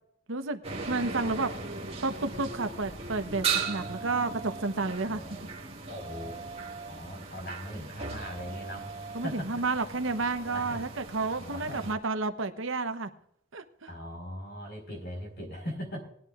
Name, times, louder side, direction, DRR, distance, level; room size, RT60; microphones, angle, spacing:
voice 1, 0.3-0.6 0.9-1.5 2.0-5.2 9.1-13.1 13.5-13.9, right 3 dB, 65° right, 9 dB, 1.0 m, -31 dB
sound 1, 0.6-11.9, right 5 dB, 30° right, 1.8 m, -38 dB
voice 2, 3.8-4.3 5.0-5.5 5.9-6.4 6.9-9.6 10.5-10.8 11.4-11.9 13.9-16.0, equal, 55° left, 4 dB, 4.5 m, -40 dB
19.5 x 11.5 x 2.5 m, 0.70 s
head